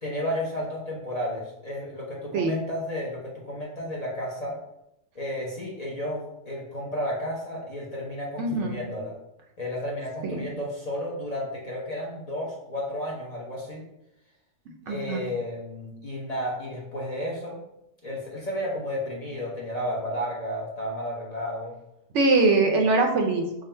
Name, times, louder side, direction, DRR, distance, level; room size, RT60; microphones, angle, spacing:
voice 1, 0.0-4.6 5.1-9.1 9.6-13.8 14.9-17.6 18.0-21.8, equal, 40° left, -4 dB, 0.7 m, -32 dB
voice 2, 8.4-8.8 10.2-10.5 14.9-15.2 22.1-23.6, right 3 dB, 70° right, 2 dB, 0.9 m, -23 dB
3.6 x 2.1 x 4.3 m, 0.84 s
omnidirectional pair, 1.3 m